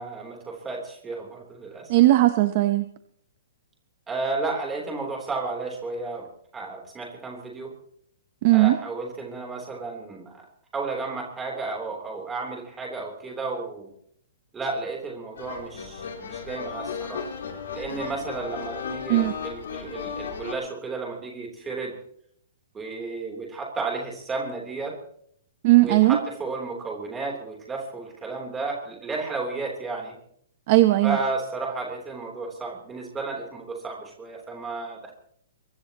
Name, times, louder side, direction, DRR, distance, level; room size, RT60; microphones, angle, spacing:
voice 1, 0.0-1.9 4.1-6.3 6.5-7.7 8.5-10.5 10.7-13.9 14.5-17.3 17.7-21.9 22.7-25.0 25.8-30.1 31.0-35.1, right 3 dB, 10° right, -1 dB, 3.4 m, -33 dB
voice 2, 1.9-2.8 8.4-8.8 19.1-19.3 25.6-26.2 30.7-31.2, right 17 dB, 30° right, 9 dB, 0.8 m, -18 dB
sound 1, 15.3-20.5, left 7 dB, 75° left, 4.5 m, -35 dB
23.0 x 21.0 x 3.0 m, 0.66 s
hypercardioid pair, 180°, 0 cm